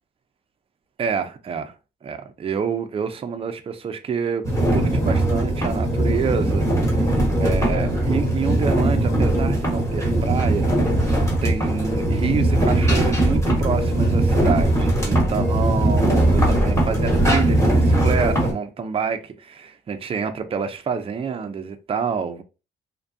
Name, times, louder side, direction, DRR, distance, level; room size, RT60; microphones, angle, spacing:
voice 1, 1.0-1.7 2.0-7.1 7.4-10.8 11.4-22.4, right 6 dB, 30° right, 0.4 m, -28 dB
sound 1, 4.4-18.5, right 1 dB, 15° left, 1.2 m, -20 dB
2.5 x 2.2 x 2.6 m
cardioid pair, 90°, 20 cm